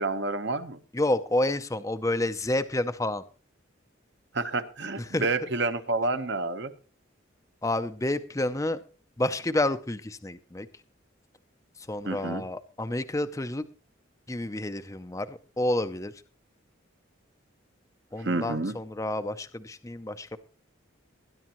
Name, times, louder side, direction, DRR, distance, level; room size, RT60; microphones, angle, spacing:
voice 1, 0.0-0.8 4.3-6.7 12.0-12.4 18.2-18.8, right 3 dB, 55° right, 10 dB, 1.0 m, -29 dB
voice 2, 0.9-3.2 5.1-5.3 7.6-8.8 9.2-10.7 11.9-13.7 14.3-16.1 18.1-20.4, left 1 dB, 15° left, 10 dB, 0.5 m, -29 dB
20.0 x 10.5 x 3.0 m, 0.37 s
head